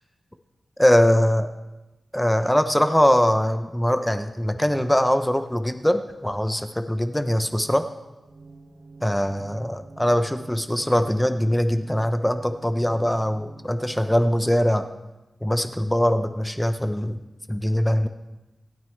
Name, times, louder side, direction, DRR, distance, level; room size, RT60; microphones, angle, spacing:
voice 1, 0.8-1.5 2.1-7.9 9.0-14.9 15.4-17.2 17.5-18.1, equal, 5° left, 8 dB, 0.7 m, -22 dB
sound 1, 8.2-14.2, right 3 dB, 55° right, 2.5 m, -48 dB
26.0 x 9.0 x 3.2 m, 1.0 s
wide cardioid pair, 150°, 0 cm